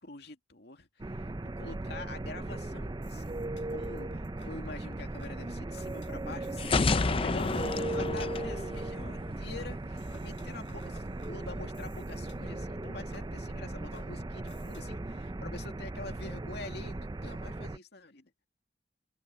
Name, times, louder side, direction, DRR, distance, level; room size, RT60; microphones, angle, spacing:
voice 1, 0.0-1.3 1.6-3.4 3.7-6.8 7.1-18.3, left 3 dB, 65° left, 2.5 m, -46 dB
sound 1, 1.0-17.8, right 2 dB, 25° right, 0.5 m, -38 dB
sound 2, 2.8-14.8, left 1 dB, 90° left, 7.9 m, -53 dB
sound 3, 6.6-9.4, left 3 dB, 30° left, 0.5 m, -30 dB
head